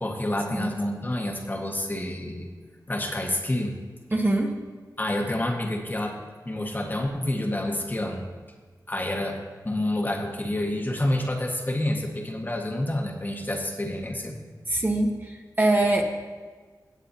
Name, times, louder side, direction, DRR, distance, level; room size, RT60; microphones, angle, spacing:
voice 1, 0.0-2.5 2.9-3.8 5.0-6.2 6.4-8.3 8.9-9.4 9.6-14.4, left 1 dB, 25° left, 1 dB, 1.7 m, -28 dB
voice 2, 4.1-4.5 14.7-16.0, right 2 dB, 30° right, 1 dB, 1.4 m, -23 dB
17.5 x 8.1 x 2.9 m, 1.4 s
cardioid pair, 60°, 7 cm